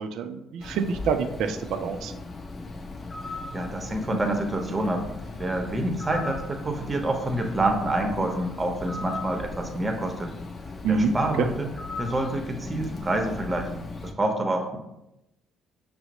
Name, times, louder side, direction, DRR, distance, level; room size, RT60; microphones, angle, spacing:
voice 1, 0.0-2.1 10.8-11.1, right 5 dB, 70° right, 7 dB, 0.3 m, -27 dB
Bird, 0.6-14.1, left 3 dB, 35° left, 0.6 m, -38 dB
voice 2, 3.3-5.1 5.4-10.3 10.9-11.7 12.0-14.8, right 1 dB, 25° right, 4 dB, 0.7 m, -27 dB
5.6 x 2.0 x 3.0 m, 0.88 s
hypercardioid pair, 60°, 0 cm